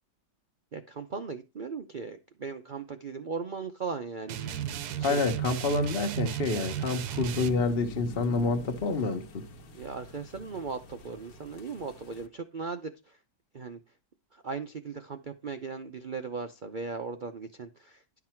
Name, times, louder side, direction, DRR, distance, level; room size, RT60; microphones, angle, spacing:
voice 1, 0.7-4.6 5.1-5.2 9.7-12.9 13.5-13.8 14.4-17.7, right 5 dB, 90° right, 0.4 m, -37 dB
sound 1, 4.3-7.5, right 11 dB, 70° right, 1.1 m, -34 dB
sound 2, 4.4-12.3, equal, 55° left, 1.5 m, -46 dB
voice 2, 5.0-9.4, left 3 dB, 40° left, 1.1 m, -28 dB
11.5 x 6.0 x 4.4 m
omnidirectional pair, 1.9 m